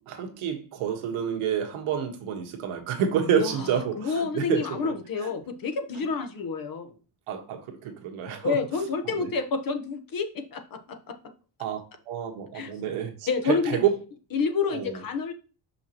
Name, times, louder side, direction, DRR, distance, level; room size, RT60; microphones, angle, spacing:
voice 1, 0.1-4.9 5.2-5.3 7.3-8.6 9.2-9.3 11.6-11.8 12.1-13.9 14.7-15.0, right 8 dB, 85° right, 1.5 m, -28 dB
voice 2, 3.2-6.9 8.4-11.1 12.5-12.7 13.3-13.8 14.3-15.3, left 5 dB, 45° left, 1.0 m, -29 dB
5.9 x 5.6 x 2.9 m
cardioid pair, 130°, 48 cm